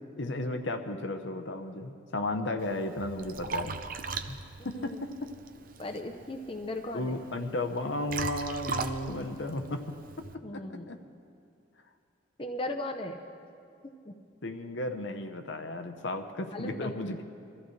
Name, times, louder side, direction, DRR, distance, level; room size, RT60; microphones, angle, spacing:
voice 1, 0.2-3.8 4.3-4.4 4.6-5.3 6.9-9.8 10.2-10.3 10.5-11.0 14.4-17.2, left 2 dB, 70° left, 6 dB, 0.8 m, -34 dB
Liquid, 2.6-10.3, right 4 dB, 45° right, 0.5 m, -39 dB
voice 2, 5.8-7.1 10.4-10.9 12.4-13.2 13.8-14.1 16.5-17.0, left 1 dB, 30° left, 3 dB, 0.7 m, -37 dB
23.0 x 14.0 x 3.2 m, 2.5 s
head